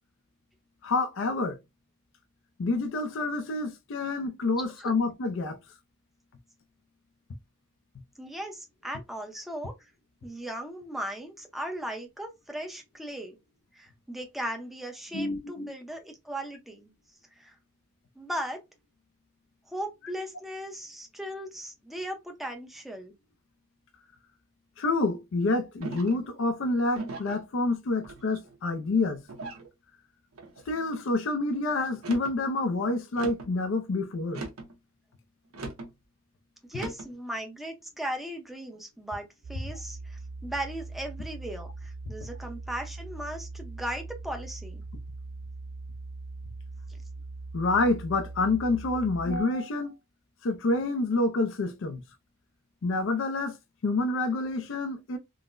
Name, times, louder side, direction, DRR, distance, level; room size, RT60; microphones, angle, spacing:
voice 1, 0.8-1.6 2.6-5.6 15.1-15.7 24.8-29.2 30.7-34.4 47.5-49.9 50.4-52.0 52.8-53.6 53.8-55.2, left 2 dB, 60° left, 0.4 m, -28 dB
voice 2, 8.2-9.9 10.2-13.4 13.7-16.9 17.4-17.6 18.2-18.6 19.7-23.2 36.7-44.8, right 1 dB, ahead, 0.6 m, -37 dB
sound 1, 25.8-26.3 26.9-27.4 28.0-28.6 29.3-29.7 30.4-30.8 31.9-32.4 33.2-33.6 34.3-34.7 35.5-35.9 36.7-37.1, right 3 dB, 80° right, 0.8 m, -39 dB
sound 2, 39.4-49.4, right 3 dB, 40° right, 0.3 m, -41 dB
3.8 x 2.0 x 2.5 m
head